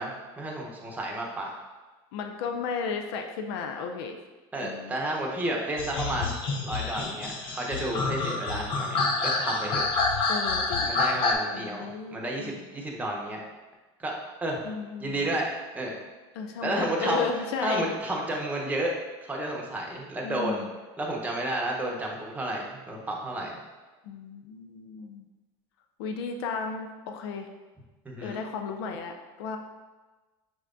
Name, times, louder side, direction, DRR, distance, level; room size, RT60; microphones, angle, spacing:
voice 1, 0.0-1.5 4.5-6.3 6.6-9.9 10.9-13.4 14.0-14.1 14.4-14.6 15.0-16.0 16.6-17.3 17.6-18.9 19.2-20.6 21.0-23.5 28.0-28.4, right 1 dB, 10° right, -1 dB, 0.9 m, -31 dB
voice 2, 2.1-4.2 4.6-5.0 10.3-10.9 11.5-12.7 14.6-15.3 16.3-17.9 20.2-20.7 24.0-25.3 26.0-27.5 28.2-29.6, left 5 dB, 85° left, 5 dB, 0.4 m, -34 dB
sound 1, 5.8-11.3, left 3 dB, 40° left, 0.6 m, -28 dB
6.1 x 3.2 x 2.6 m, 1.2 s
supercardioid pair, 120°, 13 cm